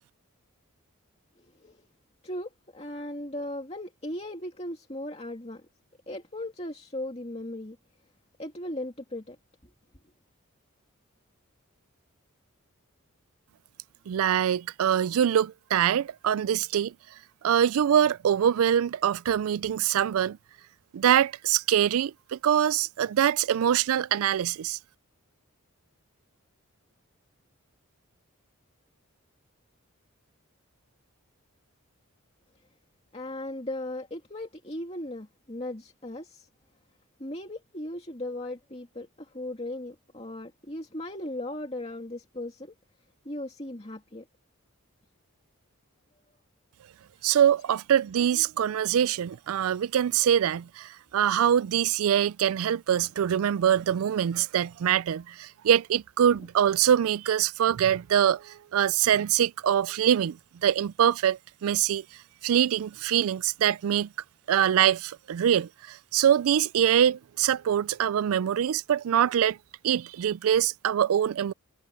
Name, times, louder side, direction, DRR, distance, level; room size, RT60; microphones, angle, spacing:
voice 1, 1.4-1.8 2.2-5.6 6.1-7.8 8.4-9.4 9.6-9.7 33.1-36.5 37.2-42.7 43.2-44.3 47.2-47.3, left 1 dB, 25° left, 2.4 m, -37 dB
voice 2, 14.1-16.9 17.4-20.4 20.9-24.8 47.2-62.0 62.4-64.1 64.5-69.6 69.8-71.5, right 9 dB, 75° right, 0.3 m, -24 dB
head